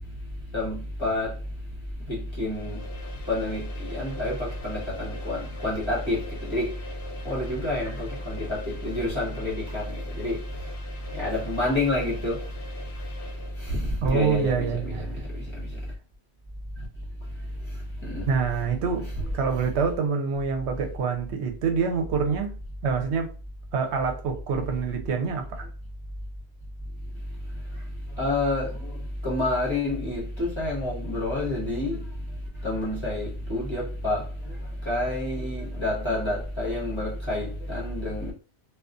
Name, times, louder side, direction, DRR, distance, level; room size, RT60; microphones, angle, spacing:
voice 1, 0.5-1.4 2.1-2.8 3.3-6.7 7.2-10.4 11.1-12.5 13.6-15.9 18.0-18.3 19.1-19.6 27.7-27.8 28.1-32.1 32.6-38.3, left 1 dB, 25° left, 0.9 m, -29 dB
sound 1, 2.2-13.9, left 2 dB, 60° left, 0.4 m, -44 dB
voice 2, 14.0-15.1 18.3-19.1 19.3-22.5 22.8-23.3 23.7-25.7, right 5 dB, 80° right, 0.9 m, -26 dB
2.3 x 2.3 x 2.4 m
omnidirectional pair, 1.1 m